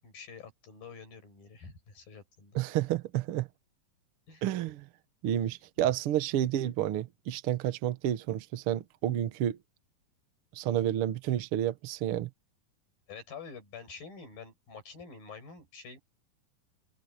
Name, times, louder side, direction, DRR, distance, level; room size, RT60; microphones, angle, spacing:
voice 1, 0.0-2.6 4.3-4.5 13.1-16.0, left 5 dB, 80° left, 8.8 m, -47 dB
voice 2, 2.5-3.5 4.4-4.9 5.2-9.6 10.5-12.3, right 11 dB, 65° right, 1.4 m, -30 dB
open air
omnidirectional pair, 4.0 m